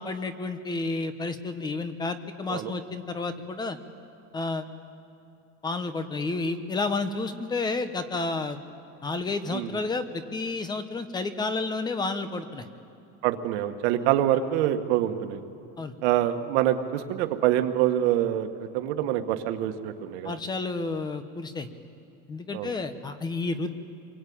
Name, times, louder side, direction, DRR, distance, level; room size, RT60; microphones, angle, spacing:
voice 1, 0.0-3.8 4.3-4.7 5.6-8.6 9.0-12.6 15.8-15.9 20.2-21.7 22.3-23.7, left 3 dB, 10° left, 10 dB, 1.0 m, -31 dB
voice 2, 9.5-9.8 13.2-15.4 16.0-18.5 18.7-20.3 22.5-22.7, right 12 dB, 70° right, 7 dB, 1.8 m, -25 dB
28.5 x 23.0 x 8.8 m, 2.6 s
cardioid pair, 170°, 35 cm